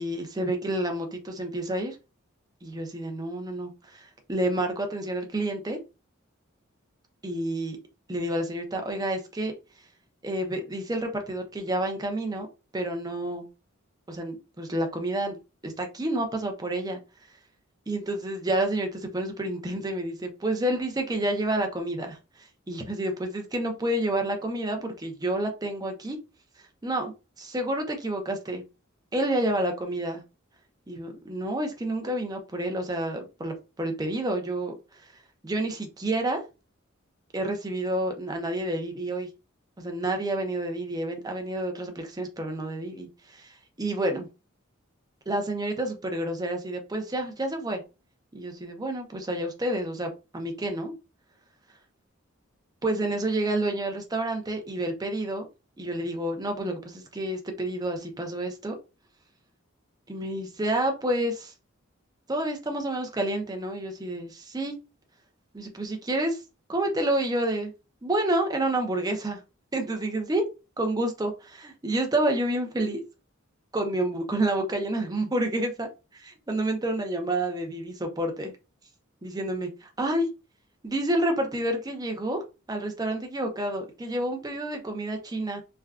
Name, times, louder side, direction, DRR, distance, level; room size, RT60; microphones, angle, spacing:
voice 1, 0.0-2.0 2.6-5.8 7.2-7.8 8.1-9.5 10.2-12.5 12.7-13.5 14.1-15.4 15.6-17.0 17.9-26.2 26.8-28.6 29.1-30.2 30.9-34.7 35.4-36.4 37.3-39.3 39.8-44.3 45.3-47.8 48.3-50.9 52.8-55.5 55.8-58.8 60.1-61.5 62.3-64.7 65.5-66.4 66.7-67.7 68.0-69.4 69.7-70.4 70.8-73.0 73.7-78.5 79.2-80.3 80.8-82.4 82.7-85.6, right 1 dB, 20° right, 0.6 m, -29 dB
3.3 x 2.3 x 2.3 m
head